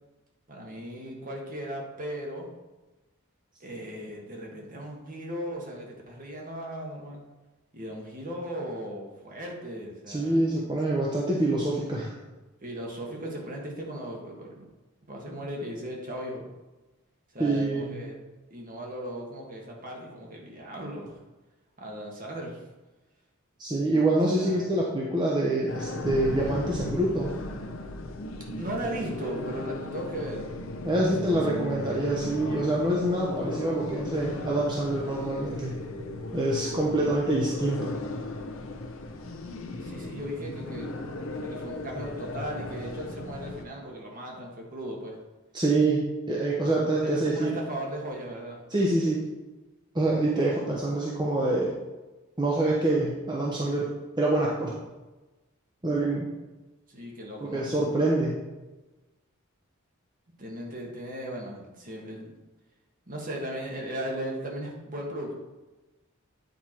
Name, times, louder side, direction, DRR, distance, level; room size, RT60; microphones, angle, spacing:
voice 1, 0.5-2.5 3.6-7.2 7.7-10.4 12.6-14.6 15.0-16.5 17.3-18.1 18.5-21.2 21.8-22.6 24.2-24.7 28.6-30.5 31.0-31.5 31.9-32.1 39.8-40.9 41.4-45.2 46.5-46.7 47.0-48.6 56.9-57.7 60.4-62.3 63.1-65.3, right 1 dB, 40° right, -1 dB, 1.6 m, -37 dB
voice 2, 10.1-12.1 17.4-18.0 23.6-27.3 30.8-35.8 36.3-37.9 45.5-47.6 48.7-49.2 49.9-51.7 52.4-53.9 54.2-54.7 55.8-56.2 57.5-58.4, right 2 dB, 20° right, -4 dB, 0.9 m, -26 dB
sound 1, 25.7-43.6, left 2 dB, 70° left, 0.8 m, -36 dB
9.1 x 4.5 x 4.4 m, 1.1 s
head